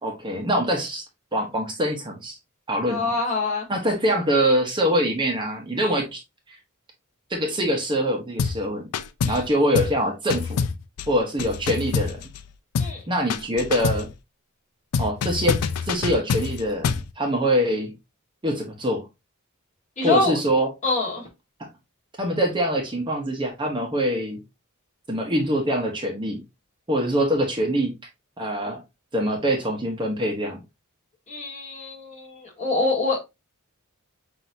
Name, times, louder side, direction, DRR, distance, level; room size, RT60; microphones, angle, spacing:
voice 1, 0.0-1.0 1.3-2.4 2.7-3.1 3.7-6.2 6.5-6.6 7.3-8.9 9.2-10.6 11.1-12.2 13.1-14.1 15.0-17.9 18.4-19.1 20.0-20.7 22.2-24.4 25.1-26.4 26.9-27.9 28.4-28.8 29.1-30.6, equal, 20° right, 0.9 m, -24 dB
voice 2, 2.9-3.7 5.8-5.9 9.2-9.4 12.8-13.0 20.0-20.4 20.8-21.3 31.3-33.2, left 2 dB, 35° left, 1.5 m, -25 dB
sound 1, 8.4-8.6 8.9-9.5 9.7-10.0 10.3-12.5 12.7-13.0 13.3-14.1 14.9-17.1, left 5 dB, 90° left, 0.4 m, -26 dB
6.0 x 2.7 x 2.6 m
head